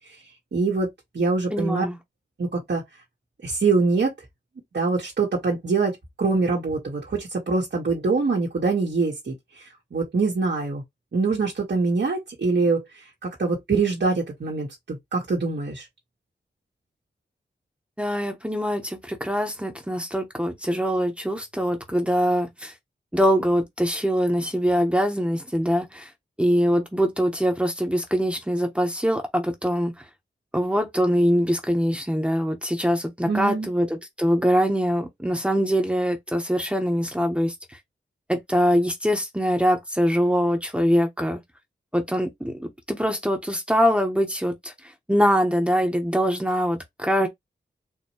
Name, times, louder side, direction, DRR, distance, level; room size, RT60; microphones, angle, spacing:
voice 1, 0.5-0.9 1.1-1.8 2.4-2.8 3.4-4.1 4.7-10.8 11.1-15.9 33.3-33.7, right 4 dB, 65° right, 1.6 m, -24 dB
voice 2, 1.5-2.0 18.0-22.7 23.1-26.1 26.4-29.9 30.5-37.5 38.3-41.4 41.9-44.7 45.1-47.3, equal, 5° right, 1.1 m, -23 dB
4.5 x 3.0 x 3.1 m
wide cardioid pair, 100°, 19 cm